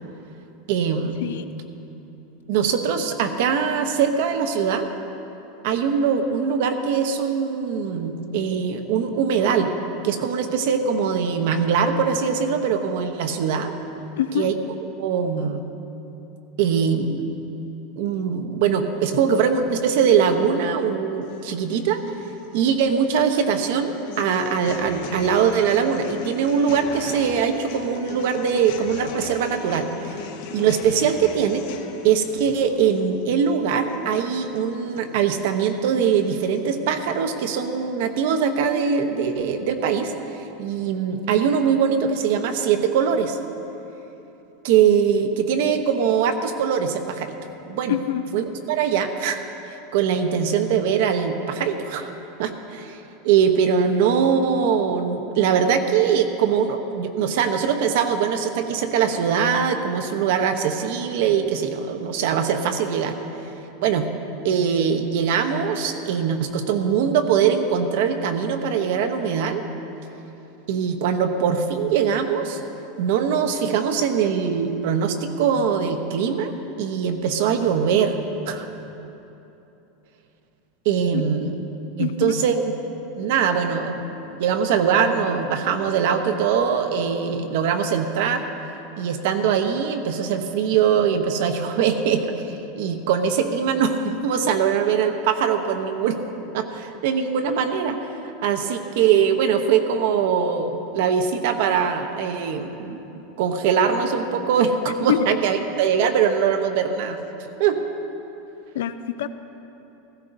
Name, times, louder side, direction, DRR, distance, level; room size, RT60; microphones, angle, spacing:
voice 1, 0.7-1.2 2.5-4.9 5.6-9.7 10.0-13.7 14.3-14.5 15.0-15.6 16.6-17.4 18.0-22.0 22.5-29.9 30.5-31.7 32.0-40.1 40.6-43.4 44.6-47.4 47.7-48.0 48.3-52.1 52.4-53.0 53.2-63.1 63.8-64.1 64.4-69.6 70.7-72.6 73.0-76.5 76.8-78.2 78.5-78.7 80.8-81.5 82.0-82.6 83.2-84.0 84.3-88.4 89.0-92.3 92.8-96.2 96.5-98.1 98.4-103.0 103.4-107.2 107.6-107.8, right 7 dB, 55° right, 7 dB, 0.9 m, -22 dB
voice 2, 14.2-14.5 47.9-48.2 81.1-81.2 82.0-82.3 105.1-105.3 108.7-109.3, left 11 dB, 85° left, 11 dB, 0.5 m, -25 dB
sound 1, 21.2-37.2, left 6 dB, 55° left, 0.9 m, -39 dB
15.5 x 15.5 x 2.7 m, 3.0 s
supercardioid pair, 180°, 0 cm